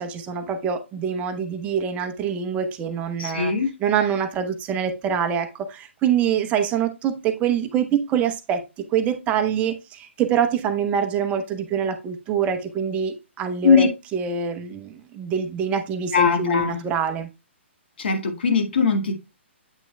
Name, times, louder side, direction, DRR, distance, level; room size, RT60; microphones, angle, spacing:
voice 1, 0.0-3.5 3.8-8.6 8.9-17.3, right 7 dB, 20° right, 0.9 m, -25 dB
voice 2, 3.2-3.7 13.6-13.9 16.1-16.8 18.0-19.1, left 5 dB, 55° left, 1.8 m, -20 dB
8.4 x 6.0 x 2.2 m
figure-of-eight pair, 125°, 7 cm